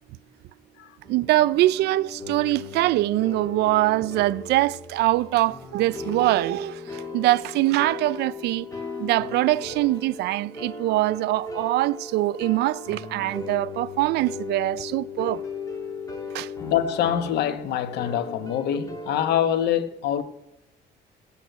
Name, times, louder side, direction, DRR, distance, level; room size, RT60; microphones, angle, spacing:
sound 1, 1.0-19.4, left 3 dB, 20° left, 3.3 m, -37 dB
voice 1, 1.1-8.7 9.0-15.4 16.3-16.5, right 17 dB, 80° right, 0.5 m, -23 dB
voice 2, 16.6-20.2, left 10 dB, 80° left, 1.2 m, -25 dB
18.0 x 8.3 x 9.2 m
cardioid pair, 110°, 17 cm